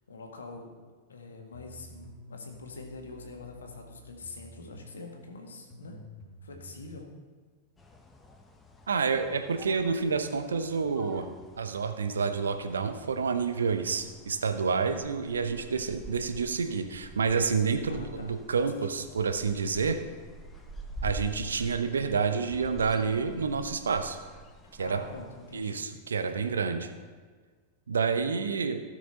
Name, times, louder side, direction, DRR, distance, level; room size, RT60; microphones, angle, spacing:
voice 1, 0.1-0.7 1.1-6.0 6.4-7.1 17.9-18.3 18.6-18.8 24.6-25.9 26.3-26.5, left 3 dB, 70° left, 2 dB, 1.7 m, -45 dB
sound 1, 1.5-6.9, equal, 10° right, 3.4 m, -50 dB
sound 2, 7.8-25.9, equal, 15° left, 1.0 m, -47 dB
voice 2, 8.9-11.3 11.6-20.0 21.0-24.2 24.8-25.0 25.5-26.9 27.9-28.8, right 5 dB, 70° right, 8 dB, 0.8 m, -29 dB
15.5 x 6.3 x 4.1 m, 1.5 s
figure-of-eight pair, 90°, 0 cm